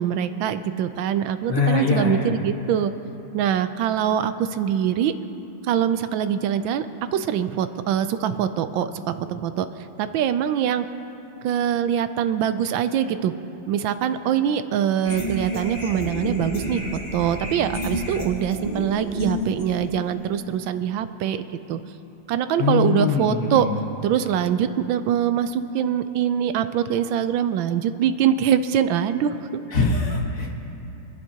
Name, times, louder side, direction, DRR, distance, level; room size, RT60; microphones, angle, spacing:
voice 1, 0.0-2.9 3.3-5.1 5.6-6.9 7.1-9.7 10.0-10.9 11.4-13.3 13.7-21.8 22.3-23.7 24.0-29.5, right 9 dB, 80° right, 11 dB, 1.3 m, -23 dB
voice 2, 1.5-2.3 22.6-23.9 29.7-30.5, left 4 dB, 45° left, -2 dB, 1.6 m, -22 dB
sound 1, 15.0-20.4, equal, 25° left, 1.1 m, -30 dB
26.0 x 11.0 x 2.8 m, 3.0 s
omnidirectional pair, 2.1 m